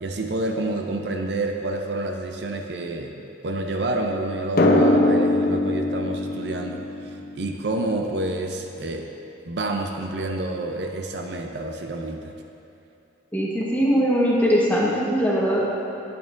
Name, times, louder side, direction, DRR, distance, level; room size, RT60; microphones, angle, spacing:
voice 1, 0.0-9.1 9.5-12.3, right 2 dB, 60° right, 3 dB, 0.5 m, -28 dB
Drum, 4.6-7.9, left 1 dB, 50° left, 0.7 m, -21 dB
voice 2, 13.3-15.7, equal, 10° left, -5 dB, 1.1 m, -21 dB
10.5 x 8.5 x 2.5 m, 2.9 s
head